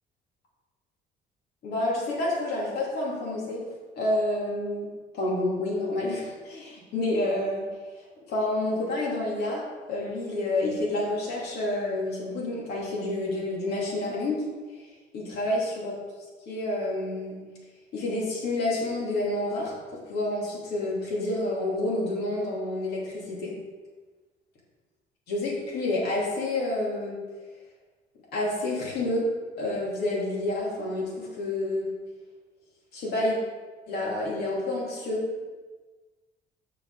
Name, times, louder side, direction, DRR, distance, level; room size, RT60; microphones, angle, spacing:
voice 1, 1.6-3.6 4.0-4.9 5.1-7.7 8.3-9.6 9.9-14.5 14.7-14.9 15.1-15.9 16.5-17.4 17.9-23.5 25.3-27.1 28.3-29.2 29.6-31.9 32.9-33.4 33.9-35.4, left 2 dB, 75° left, -4 dB, 2.9 m, -29 dB
6.7 x 5.9 x 5.5 m, 1.3 s
cardioid pair, 110°, 17 cm